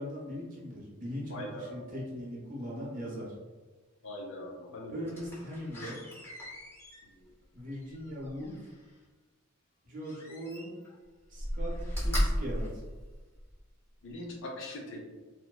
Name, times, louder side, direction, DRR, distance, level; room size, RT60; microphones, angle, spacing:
voice 1, 0.0-3.3 4.9-6.0 7.5-8.6 9.9-10.8 11.3-11.7 12.0-12.8, equal, 40° right, -4 dB, 0.6 m, -39 dB
voice 2, 1.3-1.8 4.0-5.0 14.0-15.2, left 1 dB, 60° left, 1 dB, 0.5 m, -41 dB
Slam, 5.0-8.9 10.0-10.9 11.3-13.6 14.1-14.2, equal, 10° left, 0.6 m, -35 dB
2.8 x 2.0 x 2.2 m, 1.3 s
head